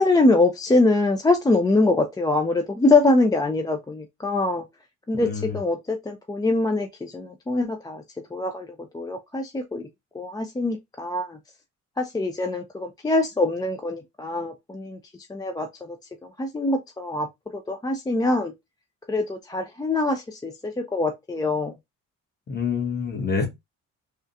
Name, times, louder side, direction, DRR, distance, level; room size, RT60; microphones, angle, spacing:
voice 1, 0.0-4.6 5.1-8.0 8.3-9.9 10.1-11.4 12.0-15.0 15.3-16.0 16.2-17.3 17.5-18.5 19.1-21.7, left 2 dB, 15° left, 0.4 m, -23 dB
voice 2, 5.1-5.6 22.5-23.5, left 6 dB, 35° left, 1.2 m, -27 dB
3.5 x 2.3 x 2.7 m
cardioid pair, 90°, 30 cm